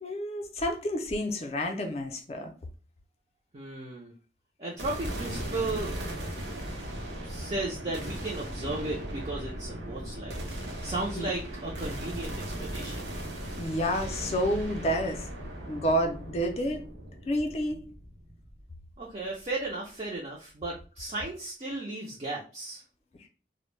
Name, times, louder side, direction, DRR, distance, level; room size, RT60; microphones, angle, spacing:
voice 1, 0.0-2.5 11.2-11.3 13.6-15.3 15.7-16.8 17.3-17.8, equal, 35° left, 4 dB, 0.4 m, -29 dB
voice 2, 3.5-4.1 4.6-6.0 7.2-13.1 19.0-22.8, right 2 dB, 35° right, -3 dB, 0.4 m, -35 dB
sound 1, 4.8-19.1, right 1 dB, 80° right, 0.7 m, -38 dB
2.1 x 2.0 x 3.1 m, 0.36 s
head